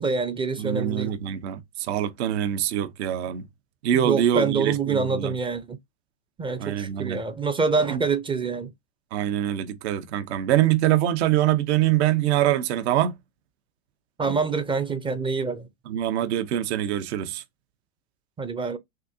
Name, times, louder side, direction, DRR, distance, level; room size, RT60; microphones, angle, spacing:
voice 1, 0.0-1.1 4.0-5.8 6.4-8.7 14.2-15.7 18.4-18.8, right 4 dB, 15° right, 0.5 m, -26 dB
voice 2, 0.6-3.5 3.8-5.3 6.6-7.2 7.9-8.0 9.1-13.1 15.9-17.4, right 12 dB, 70° right, 0.9 m, -24 dB
6.1 x 2.8 x 2.7 m
supercardioid pair, 130°, 34 cm